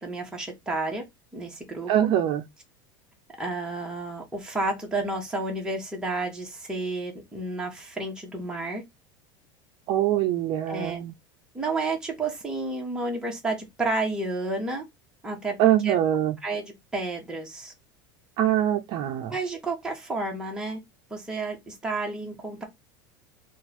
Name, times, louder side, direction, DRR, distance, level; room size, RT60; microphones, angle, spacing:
voice 1, 0.0-1.0 1.3-2.1 3.4-8.8 10.7-11.0 11.5-14.8 15.2-16.0 16.4-17.7 19.3-20.8 21.1-22.6, right 2 dB, 5° right, 1.4 m, -31 dB
voice 2, 1.9-2.4 9.9-11.1 15.6-16.4 18.4-19.3, right 11 dB, 45° right, 0.6 m, -23 dB
3.9 x 2.5 x 4.2 m
supercardioid pair, 145°, 12 cm